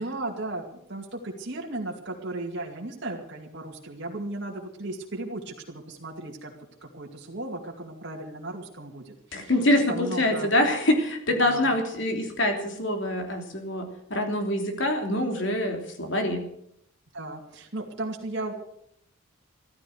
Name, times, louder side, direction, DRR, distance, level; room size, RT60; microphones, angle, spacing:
voice 1, 0.0-6.5 6.8-9.6 9.9-10.5 11.3-11.7 17.1-18.5, right 2 dB, 60° right, -2 dB, 2.5 m, -35 dB
voice 2, 9.3-13.8 14.1-16.4, left 1 dB, 65° left, 4 dB, 3.2 m, -25 dB
14.5 x 14.5 x 6.6 m, 0.72 s
head